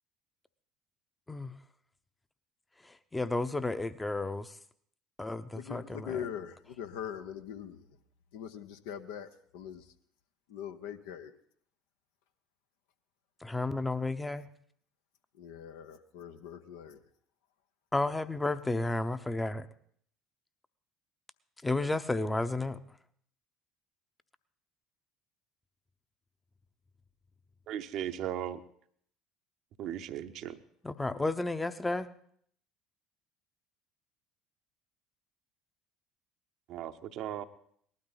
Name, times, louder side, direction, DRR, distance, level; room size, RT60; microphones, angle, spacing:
voice 1, 2.8-4.6 5.2-6.3 13.4-14.5 17.9-19.7 21.6-22.8 30.8-32.1, left 2 dB, 15° left, 13 dB, 0.8 m, -32 dB
voice 2, 5.5-7.9 8.3-9.9 10.5-11.3 15.4-17.0, left 9 dB, 70° left, 8 dB, 0.8 m, -42 dB
voice 3, 27.7-28.6 29.8-30.6 36.7-37.4, right 10 dB, 55° right, 9 dB, 0.8 m, -37 dB
19.0 x 12.0 x 4.0 m, 0.63 s
figure-of-eight pair, 60°, 0 cm